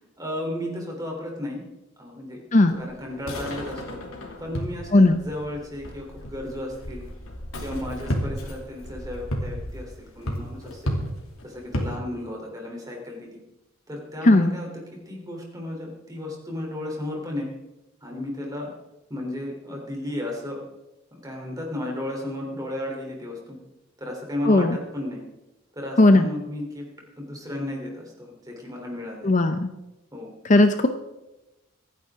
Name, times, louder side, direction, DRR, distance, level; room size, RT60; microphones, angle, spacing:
voice 1, 0.2-1.6 2.0-2.4 2.7-4.0 4.4-7.1 7.6-11.0 11.4-13.4 13.9-17.5 18.0-18.7 19.1-20.6 21.2-23.6 24.0-25.2 25.7-26.9 27.2-29.3 30.1-30.3, left 1 dB, 15° right, 0 dB, 3.4 m, -34 dB
sound 1, 2.7-11.9, equal, 85° left, 2.7 m, -33 dB
voice 2, 24.5-24.8 26.0-26.3 29.2-29.7 30.5-30.9, left 2 dB, 35° left, 8 dB, 0.6 m, -16 dB
25.0 x 10.0 x 3.7 m, 0.98 s
head